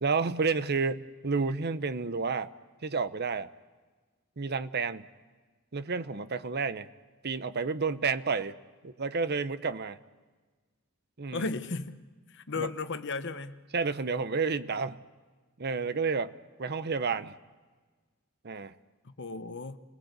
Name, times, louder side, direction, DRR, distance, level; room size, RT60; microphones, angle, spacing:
voice 1, 0.0-2.5 2.8-3.5 4.4-5.1 5.7-6.9 7.2-8.6 8.8-10.0 11.2-11.5 12.6-12.7 13.7-15.0 15.6-16.3 16.6-17.3 18.4-18.7, right 4 dB, 50° right, 0.9 m, -30 dB
voice 2, 11.3-12.0 12.3-13.6 19.0-19.8, left 3 dB, 60° left, 1.1 m, -35 dB
29.5 x 19.5 x 8.2 m
head